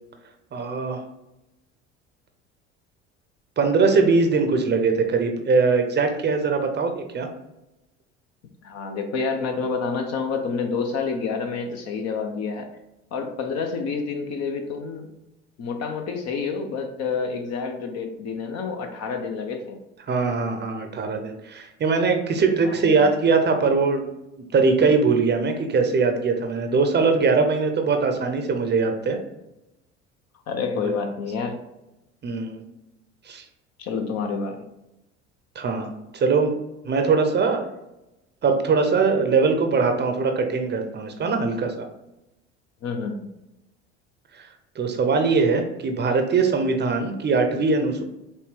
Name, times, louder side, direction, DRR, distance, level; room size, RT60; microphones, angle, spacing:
voice 1, 0.5-1.0 3.6-7.3 20.1-24.1 24.5-29.2 32.2-32.6 33.3-33.4 35.6-35.9 36.1-36.6 36.8-37.6 38.4-41.9 44.4-44.5 44.8-48.0, right 4 dB, 30° right, 5 dB, 0.7 m, -21 dB
voice 2, 8.6-12.7 13.1-15.1 15.6-19.8 22.6-23.0 30.5-31.6 33.8-34.6 42.8-43.3, left 5 dB, 45° left, 5 dB, 0.8 m, -28 dB
5.5 x 2.2 x 3.3 m, 0.93 s
hypercardioid pair, 65°, 35 cm